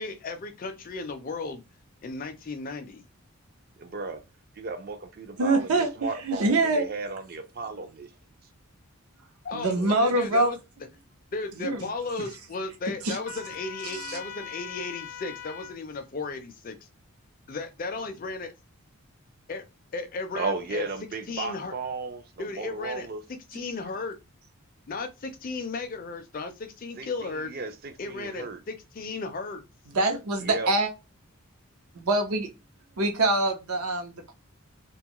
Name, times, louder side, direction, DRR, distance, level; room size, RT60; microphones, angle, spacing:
voice 1, 0.0-1.6 2.0-3.1 9.4-10.6 11.3-16.9 17.5-18.5 19.5-19.6 19.9-20.9 21.3-21.7 22.4-23.1 23.5-24.2 24.9-27.5 28.0-29.6, left 3 dB, 40° left, 0.4 m, -35 dB
voice 2, 3.8-4.2 4.5-8.1 20.3-23.2 27.0-28.6 30.4-30.7, right 3 dB, 40° right, 0.4 m, -35 dB
voice 3, 5.4-5.9 6.2-6.9 9.5-10.5 11.6-11.8 13.0-13.2 14.0-14.2 29.9-30.9 31.9-32.5 33.0-34.3, right 2 dB, 80° right, 0.7 m, -24 dB
Trumpet, 13.2-15.8, left 9 dB, 90° left, 0.5 m, -41 dB
2.6 x 2.3 x 2.9 m
head